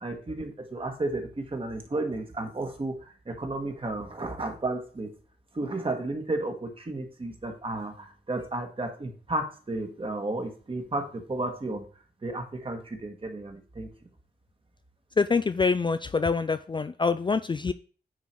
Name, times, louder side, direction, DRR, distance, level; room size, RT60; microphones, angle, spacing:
voice 1, 0.0-5.1 5.5-11.8 12.2-13.9, right 2 dB, 30° right, 4 dB, 1.7 m, -33 dB
voice 2, 15.2-17.7, left 4 dB, 30° left, 11 dB, 0.4 m, -25 dB
9.5 x 4.0 x 4.6 m, 0.39 s
cardioid pair, 85°, 17 cm